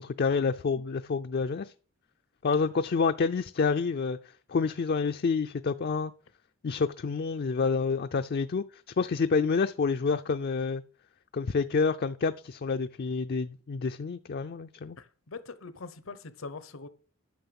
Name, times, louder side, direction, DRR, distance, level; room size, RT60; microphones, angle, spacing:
voice 1, 0.0-1.7 2.4-4.2 4.5-6.1 6.6-10.8 11.3-15.0, left 5 dB, 50° left, 0.4 m, -28 dB
voice 2, 15.0-16.9, left 4 dB, 85° left, 1.0 m, -42 dB
9.3 x 6.4 x 6.9 m
head